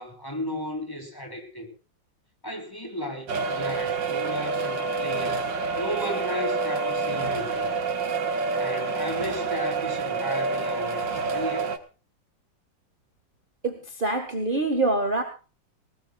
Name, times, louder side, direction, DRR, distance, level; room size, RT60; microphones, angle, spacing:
voice 1, 0.0-1.7 2.4-5.4 5.8-7.7 8.6-11.7, equal, 10° left, 2 dB, 4.2 m, -34 dB
sound 1, 3.3-11.8, right 4 dB, 80° right, 2.2 m, -28 dB
voice 2, 13.6-15.2, right 2 dB, 30° right, 5 dB, 2.0 m, -25 dB
19.5 x 19.0 x 2.5 m, 0.35 s
omnidirectional pair, 2.0 m